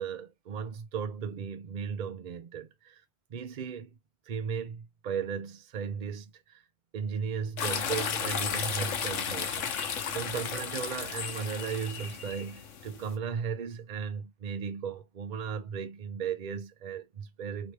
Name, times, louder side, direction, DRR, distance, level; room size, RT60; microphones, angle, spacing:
voice 1, 0.0-3.0 3.3-3.9 4.3-6.6 6.9-17.7, right 6 dB, 50° right, 0.6 m, -36 dB
sound 1, 7.6-13.1, left 7 dB, 90° left, 1.1 m, -34 dB
3.0 x 2.8 x 2.9 m
omnidirectional pair, 1.2 m